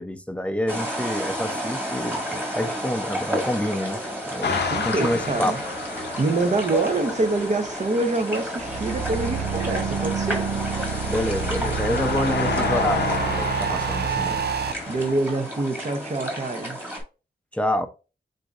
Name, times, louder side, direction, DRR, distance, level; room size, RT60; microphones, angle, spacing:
voice 1, 0.0-2.2 2.5-5.6 11.1-14.4 17.5-17.9, left 1 dB, 5° left, 0.5 m, -27 dB
sound 1, 0.7-17.0, equal, 10° right, 1.7 m, -32 dB
sound 2, 4.4-15.1, left 5 dB, 85° left, 0.8 m, -32 dB
voice 2, 4.7-5.6 6.2-10.5 14.9-16.8, right 2 dB, 45° right, 0.9 m, -25 dB
sound 3, 8.6-14.7, right 7 dB, 70° right, 0.4 m, -28 dB
7.7 x 2.7 x 2.4 m
wide cardioid pair, 120°, 17 cm